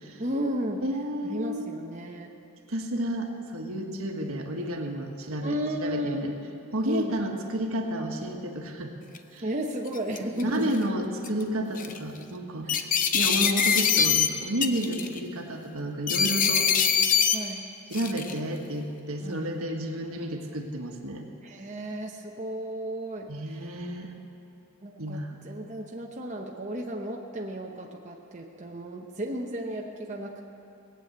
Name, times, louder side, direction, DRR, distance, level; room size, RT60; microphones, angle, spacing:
voice 1, 0.2-0.8 1.2-2.3 5.4-6.4 6.9-7.1 9.4-10.7 12.6-12.9 13.4-13.6 17.3-17.7 19.2-19.4 21.4-23.7 24.8-30.4, equal, 30° right, -1 dB, 1.0 m, -34 dB
voice 2, 0.8-1.7 2.7-6.3 6.7-8.9 9.3-9.5 10.3-12.7 13.1-16.7 17.9-21.3 23.3-24.1 25.0-25.4, right 1 dB, 70° right, 2 dB, 1.6 m, -31 dB
sound 1, 9.2-9.3 9.9-10.4 11.2-11.4 11.8-12.0 12.7-14.3 14.6-15.2 16.1-17.4 17.9-18.4, left 7 dB, 35° left, 0.7 m, -23 dB
19.0 x 9.2 x 8.0 m, 2.8 s
head